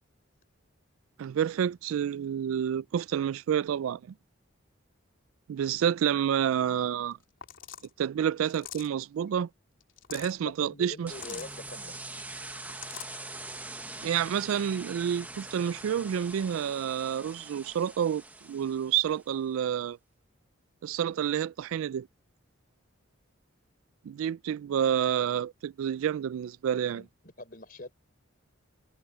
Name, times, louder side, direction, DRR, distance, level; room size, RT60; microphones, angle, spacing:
voice 1, 1.2-4.1 5.5-7.2 8.0-9.5 10.1-11.1 14.0-20.0 20.8-22.1 24.0-27.1, right 9 dB, 75° right, 0.3 m, -29 dB
sound 1, 7.1-7.2 7.4-7.9 8.4-9.0 9.8-10.4 11.1-11.5 12.5-13.2, left 11 dB, 65° left, 3.8 m, -43 dB
voice 2, 10.4-11.9 26.9-27.1 27.4-27.9, left 2 dB, 40° left, 4.2 m, -43 dB
sound 2, 11.1-19.3, right 2 dB, 5° right, 0.7 m, -43 dB
head